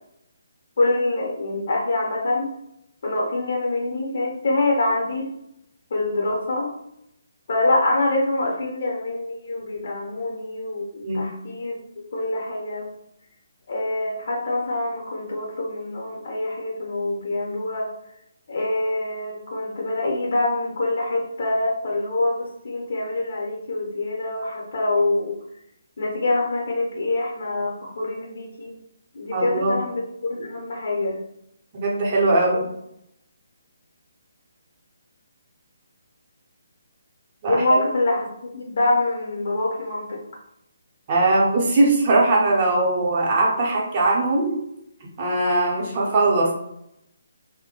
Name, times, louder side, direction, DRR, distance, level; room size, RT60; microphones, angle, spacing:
voice 1, 0.8-2.5 3.0-5.3 5.9-6.7 7.5-11.8 12.1-12.9 13.7-17.9 18.5-25.3 26.0-28.7 29.1-31.2 32.5-32.6 37.5-40.2, left 2 dB, 55° left, -1 dB, 0.8 m, -25 dB
voice 2, 29.3-29.8 31.7-32.6 37.4-37.8 41.1-44.6 45.2-46.5, right 2 dB, 35° right, -4 dB, 0.8 m, -20 dB
2.2 x 2.1 x 2.9 m, 0.77 s
figure-of-eight pair, 145°, 0 cm